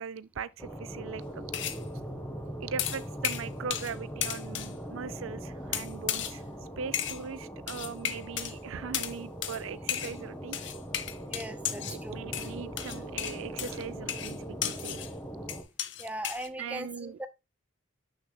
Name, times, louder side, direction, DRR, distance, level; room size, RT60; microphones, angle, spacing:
voice 1, 0.0-1.5 2.6-6.4 6.8-10.7 11.9-15.0 16.6-17.2, right 6 dB, 80° right, 0.4 m, -40 dB
sound 1, 0.6-15.6, right 1 dB, 10° left, 1.0 m, -41 dB
sound 2, 1.5-1.8 2.8-4.0 4.2-4.7 5.7-6.4 6.9-7.2 7.7-8.5 8.9-9.2 9.4-9.6 9.9-10.2 10.5-12.0 12.3-15.1 15.5-16.5, left 10 dB, 60° left, 0.8 m, -34 dB
voice 2, 11.2-12.2 16.0-17.3, right 1 dB, 5° right, 0.4 m, -39 dB
8.1 x 6.4 x 2.3 m
head